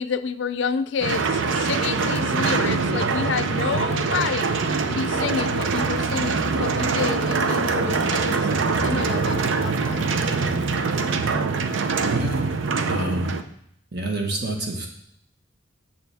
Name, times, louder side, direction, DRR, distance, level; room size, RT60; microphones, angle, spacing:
voice 1, 0.0-4.5 4.9-10.1, left 6 dB, 65° left, 12 dB, 0.4 m, -29 dB
sound 1, 1.0-13.4, right 4 dB, 70° right, 0.6 m, -23 dB
voice 2, 12.0-12.4 12.8-13.3 13.9-14.9, right 1 dB, 55° right, 1 dB, 1.3 m, -28 dB
9.0 x 7.0 x 3.5 m, 0.70 s
head